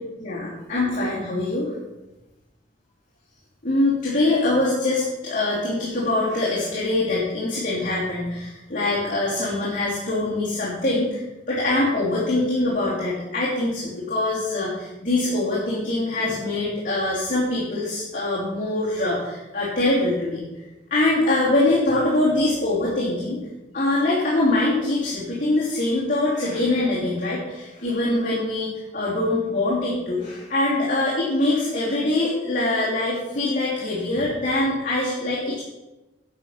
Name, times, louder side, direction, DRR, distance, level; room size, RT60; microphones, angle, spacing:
voice 1, 0.2-1.7 3.6-11.2 11.5-20.4 20.9-23.4 23.7-35.6, left 2 dB, 45° left, -8 dB, 3.2 m, -23 dB
11.0 x 5.8 x 7.3 m, 1.0 s
head